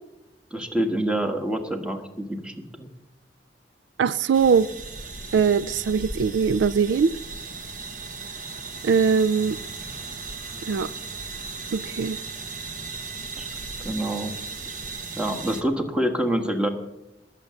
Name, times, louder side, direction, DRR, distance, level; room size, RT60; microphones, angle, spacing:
voice 1, 0.5-2.9 13.4-13.5 13.8-14.4 14.7-14.8 15.2-16.7, right 1 dB, 5° right, 1.4 m, -26 dB
voice 2, 4.0-4.7 5.3-7.2 8.8-9.6 10.7-10.9 11.7-12.2, right 6 dB, 80° right, 0.4 m, -21 dB
sound 1, 4.3-15.6, right 3 dB, 50° right, 1.4 m, -36 dB
20.5 x 7.5 x 6.9 m
head